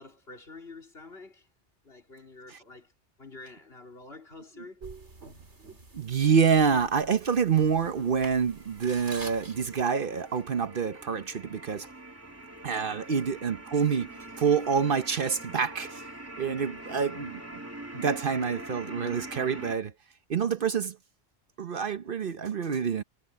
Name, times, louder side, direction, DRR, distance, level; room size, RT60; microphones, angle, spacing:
voice 1, 0.0-1.5 1.8-2.9 3.2-4.9 13.0-13.3 16.7-17.1, left 3 dB, 60° left, 3.5 m, -48 dB
sound 1, 4.8-9.8, right 3 dB, 80° right, 3.8 m, -47 dB
voice 2, 5.9-11.9 12.6-16.0 16.4-17.4 17.9-19.9 20.3-21.0 21.6-23.0, right 6 dB, 55° right, 1.0 m, -27 dB
sound 2, 8.0-19.8, right 1 dB, 15° right, 2.3 m, -44 dB
omnidirectional pair, 1.1 m